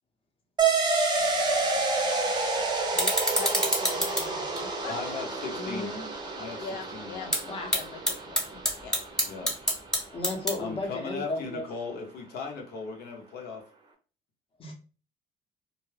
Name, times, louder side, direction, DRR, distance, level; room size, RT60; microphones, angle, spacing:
sound 1, 0.6-9.6, right 3 dB, 25° right, 0.6 m, -29 dB
sound 2, 1.2-10.9, equal, 5° left, 1.0 m, -32 dB
voice 1, 2.9-4.9 6.6-8.9, left 6 dB, 85° left, 3 dB, 0.4 m, -42 dB
voice 2, 4.9-6.0 6.4-6.7 6.9-7.3 9.3-9.5 10.6-13.6, left 4 dB, 70° left, 2 dB, 0.8 m, -37 dB
voice 3, 5.5-6.0 7.5-7.7 10.1-11.6 14.6-14.7, left 2 dB, 35° left, 2 dB, 0.8 m, -34 dB
2.3 x 2.2 x 3.2 m, 0.36 s
cardioid pair, 110°, 17 cm